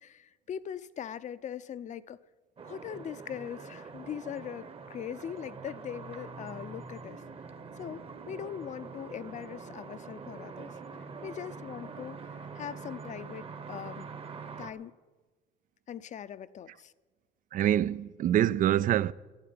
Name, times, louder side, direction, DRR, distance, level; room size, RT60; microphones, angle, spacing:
voice 1, 0.0-2.2 2.6-7.2 7.8-14.1 14.6-14.9 15.9-16.9, left 9 dB, 45° left, 0.6 m, -41 dB
sound 1, 2.6-14.7, right 5 dB, 35° right, 1.1 m, -44 dB
voice 2, 17.5-19.1, right 11 dB, 55° right, 0.4 m, -25 dB
12.0 x 7.9 x 9.6 m
cardioid pair, 110°, 17 cm